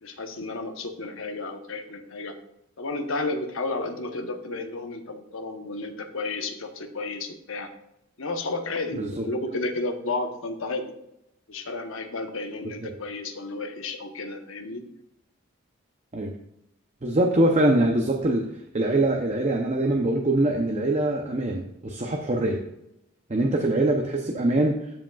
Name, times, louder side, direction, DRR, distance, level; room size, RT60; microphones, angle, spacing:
voice 1, 0.0-2.3 2.8-7.7 8.2-10.9 11.5-14.9, left 2 dB, 70° left, 6 dB, 0.9 m, -32 dB
voice 2, 17.0-18.5 18.7-22.6 23.3-24.8, right 1 dB, 30° right, 2 dB, 0.6 m, -23 dB
13.0 x 5.0 x 2.3 m, 0.83 s
head